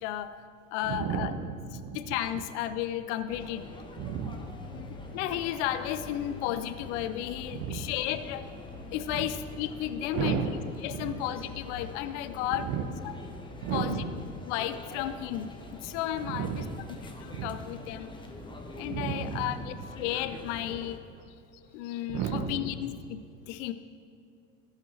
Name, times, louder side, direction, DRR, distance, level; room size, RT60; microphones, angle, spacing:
voice 1, 0.0-0.3 0.7-1.3 1.9-3.7 4.7-8.5 8.9-10.5 10.8-12.7 13.0-13.1 13.7-14.0 14.5-16.5 17.2-18.2 18.8-21.0 21.7-23.7, left 12 dB, 60° left, 12 dB, 0.6 m, -33 dB
voice 2, 0.8-2.2 4.0-4.8 7.5-7.9 9.1-9.3 10.1-10.5 10.9-11.2 12.5-12.9 13.6-14.1 16.2-16.8 17.3-17.6 18.9-19.8 20.7-20.8 21.9-22.7, right 7 dB, 45° right, 6 dB, 1.1 m, -34 dB
sound 1, 3.3-21.0, left 2 dB, 10° left, 1.1 m, -45 dB
14.5 x 5.2 x 4.4 m, 2.3 s
hypercardioid pair, 80°, 40 cm